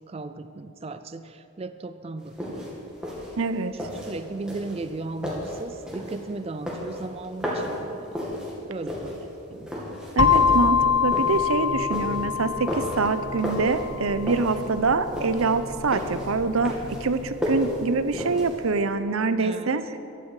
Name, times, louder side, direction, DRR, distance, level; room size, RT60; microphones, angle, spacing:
voice 1, 0.1-2.8 3.7-8.2 8.7-9.7 19.4-20.0, right 3 dB, 30° right, 10 dB, 0.4 m, -36 dB
sound 1, 2.2-18.8, equal, 5° right, 2.4 m, -33 dB
voice 2, 3.4-3.7 10.2-20.0, right 3 dB, 90° right, 11 dB, 0.7 m, -25 dB
sound 2, 10.2-18.0, left 6 dB, 60° left, 1.1 m, -26 dB
15.0 x 12.5 x 4.9 m, 2.7 s
head